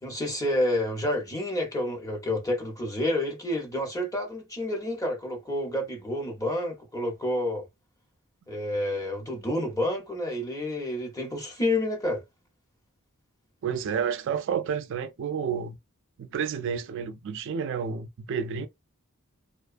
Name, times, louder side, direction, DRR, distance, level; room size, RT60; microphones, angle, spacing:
voice 1, 0.0-7.6 8.5-12.2, left 1 dB, 15° left, 0.7 m, -29 dB
voice 2, 13.6-15.8 16.2-18.7, right 7 dB, 60° right, 0.3 m, -30 dB
2.4 x 2.2 x 2.4 m
head